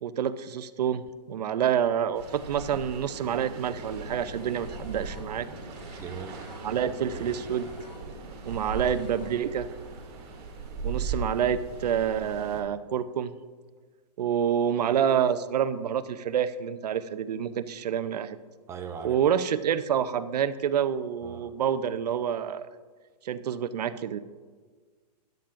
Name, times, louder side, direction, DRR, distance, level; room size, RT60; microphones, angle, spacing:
voice 1, 0.0-5.5 6.6-7.7 8.4-9.7 10.8-13.3 14.2-18.4 19.0-22.7 23.2-24.2, right 8 dB, 70° right, 13 dB, 0.6 m, -28 dB
sound 1, 2.1-12.6, right 3 dB, 40° right, 2.6 m, -38 dB
sound 2, 4.3-9.8, left 3 dB, 80° left, 1.5 m, -53 dB
voice 2, 6.0-6.4 18.7-19.2 21.2-21.5, right 6 dB, 15° right, 6 dB, 0.6 m, -39 dB
13.0 x 10.5 x 2.5 m, 1.5 s
hypercardioid pair, 150°, 21 cm